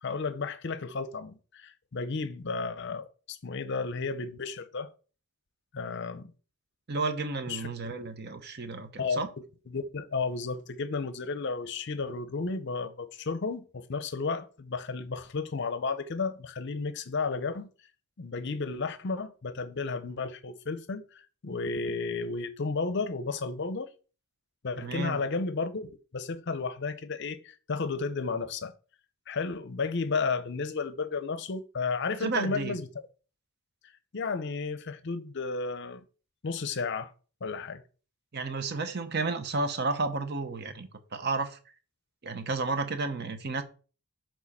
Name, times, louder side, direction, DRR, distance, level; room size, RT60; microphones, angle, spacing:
voice 1, 0.0-4.9 5.7-6.3 7.5-7.7 9.0-9.2 9.7-17.7 18.2-23.9 24.6-28.7 29.3-32.9 34.1-36.0 36.4-37.1 37.4-37.8, left 4 dB, 50° left, 0.6 m, -33 dB
voice 2, 6.9-9.3 24.8-25.2 32.2-32.8 38.3-41.6 42.2-43.6, right 3 dB, 45° right, 0.8 m, -32 dB
7.3 x 3.8 x 4.2 m
head